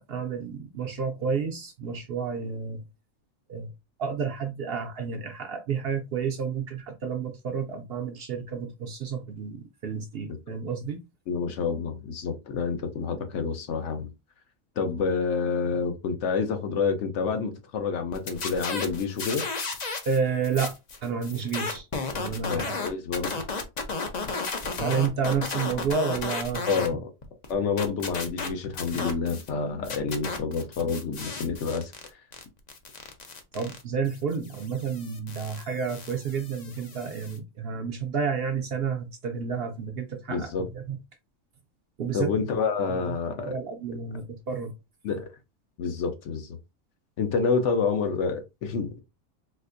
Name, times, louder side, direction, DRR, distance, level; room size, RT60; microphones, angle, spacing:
voice 1, 0.0-2.8 3.5-3.7 4.0-11.0 20.1-20.8 21.0-21.9 22.1-22.8 24.8-26.6 33.5-41.0 42.0-42.3 42.9-43.1 43.5-44.7, right 6 dB, 60° right, 0.7 m, -30 dB
voice 2, 11.3-14.1 14.8-19.5 22.5-23.4 26.7-27.1 27.5-31.9 40.3-40.7 42.1-43.6 45.0-45.3 45.8-46.6 47.2-49.0, left 5 dB, 65° left, 0.9 m, -28 dB
sound 1, 18.1-20.2 20.4-26.9 27.2-29.5 29.8-37.4, left 4 dB, 45° left, 0.6 m, -34 dB
4.2 x 2.5 x 2.5 m
omnidirectional pair, 1.3 m